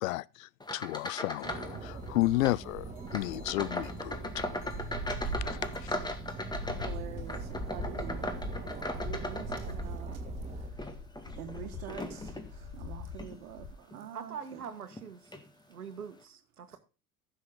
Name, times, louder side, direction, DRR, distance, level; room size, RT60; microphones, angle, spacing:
voice 1, 0.0-4.2 5.4-5.9, left 18 dB, 65° left, 0.5 m, -32 dB
sound 1, 0.6-2.6 3.1-10.2 10.7-12.5 13.1-13.4 13.9-14.0 14.9-15.0 15.3-15.5, left 1 dB, 10° left, 1.7 m, -38 dB
sound 2, 1.4-1.5 1.9-13.7, left 5 dB, 40° left, 2.9 m, -46 dB
sound 3, 1.4-10.7, right 3 dB, 15° right, 2.2 m, -40 dB
voice 2, 6.7-14.6 16.7-16.8, right 10 dB, 70° right, 1.6 m, -47 dB
voice 3, 14.1-15.3 15.7-16.8, right 7 dB, 85° right, 1.3 m, -43 dB
15.0 x 6.5 x 3.6 m
figure-of-eight pair, 75°, 44 cm